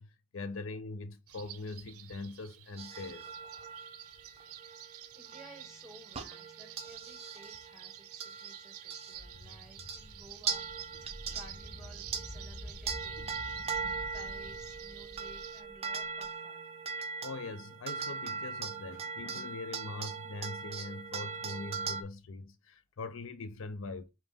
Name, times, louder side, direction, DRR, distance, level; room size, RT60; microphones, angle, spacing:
voice 1, 0.0-3.3 17.2-24.1, left 3 dB, 65° left, 0.5 m, -42 dB
sound 1, 1.3-15.6, right 13 dB, 90° right, 0.5 m, -50 dB
sound 2, 2.8-9.4 9.8-10.1 10.5-22.0, right 5 dB, 25° right, 0.5 m, -40 dB
voice 2, 4.7-13.2 14.1-16.7, right 1 dB, 5° right, 1.5 m, -56 dB
sound 3, 9.1-16.2, equal, 45° left, 0.8 m, -48 dB
5.1 x 2.5 x 3.6 m
head